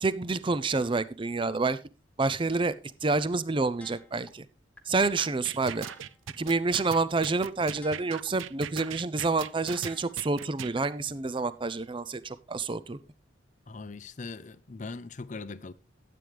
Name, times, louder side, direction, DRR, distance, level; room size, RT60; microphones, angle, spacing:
voice 1, 0.0-1.8 2.2-2.7 3.0-4.5 4.9-5.9 6.4-13.0, right 3 dB, 25° right, 0.5 m, -28 dB
sound 1, 3.8-4.3 4.8-4.9 5.3-5.4 5.8-6.3 6.8-6.9 7.3-7.4 7.8-8.3 8.8-8.9 9.3-9.4 9.8-10.3 10.8-10.9, left 2 dB, 5° left, 1.0 m, -51 dB
sound 2, 5.0-10.7, right 9 dB, 85° right, 0.5 m, -39 dB
voice 2, 13.7-15.7, left 3 dB, 40° left, 0.5 m, -40 dB
12.5 x 8.6 x 3.4 m
head